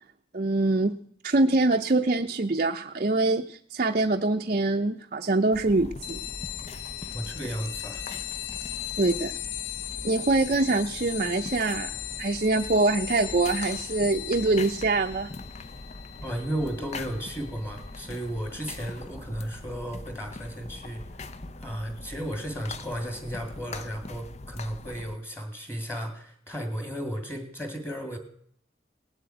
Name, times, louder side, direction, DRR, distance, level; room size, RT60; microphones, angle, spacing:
voice 1, 0.3-0.9 1.2-6.2 9.0-9.4 10.0-11.9 12.2-15.3, right 2 dB, 45° right, 3 dB, 0.6 m, -24 dB
sound 1, 5.5-25.2, left 2 dB, 35° left, 0.6 m, -42 dB
sound 2, 6.0-18.1, left 14 dB, 80° left, 0.8 m, -38 dB
voice 2, 7.1-8.0 16.2-21.0 21.6-28.2, equal, 10° left, 6 dB, 2.4 m, -34 dB
18.0 x 7.8 x 9.1 m, 0.63 s
head